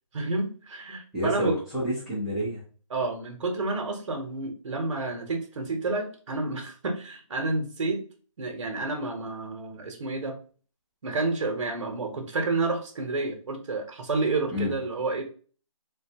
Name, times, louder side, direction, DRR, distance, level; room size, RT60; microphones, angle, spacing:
voice 1, 0.1-1.6 2.9-8.0 8.4-10.4 11.0-15.2, right 3 dB, 60° right, 4 dB, 0.9 m, -30 dB
voice 2, 1.1-2.6 14.5-14.7, equal, ahead, -13 dB, 0.6 m, -29 dB
3.7 x 2.3 x 2.7 m, 0.39 s
hypercardioid pair, 170°, 18 cm